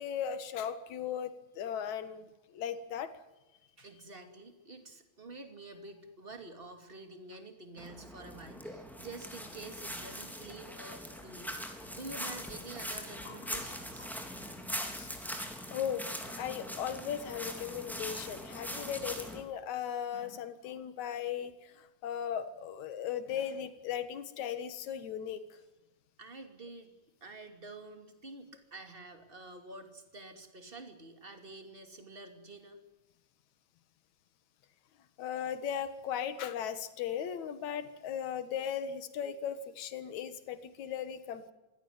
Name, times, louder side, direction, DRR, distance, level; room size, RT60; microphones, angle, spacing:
voice 1, 0.0-3.1 13.3-13.4 14.5-14.6 14.9-15.1 15.7-16.1 16.4-25.4 35.2-41.5, left 8 dB, 75° left, 11 dB, 2.9 m, -37 dB
voice 2, 3.8-14.1 15.3-15.5 26.2-26.9 27.2-32.8, right 2 dB, 20° right, 7 dB, 2.6 m, -48 dB
sound 1, 7.8-19.4, equal, ahead, 3.2 m, -42 dB
24.5 x 16.5 x 9.6 m, 1.0 s
omnidirectional pair, 3.4 m